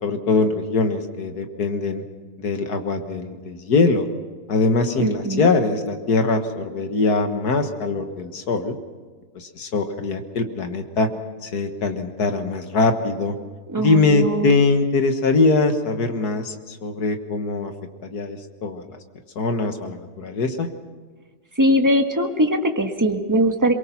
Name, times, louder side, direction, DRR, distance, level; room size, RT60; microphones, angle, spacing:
voice 1, 0.0-2.0 2.4-4.1 4.5-8.8 9.4-11.1 11.4-13.4 13.8-17.7 18.0-18.8 19.4-20.7, left 3 dB, 60° left, 6 dB, 1.9 m, -22 dB
voice 2, 5.0-5.5 13.7-14.6 21.6-23.7, equal, 10° right, 4 dB, 1.3 m, -21 dB
23.0 x 23.0 x 5.8 m, 1.4 s
omnidirectional pair, 1.9 m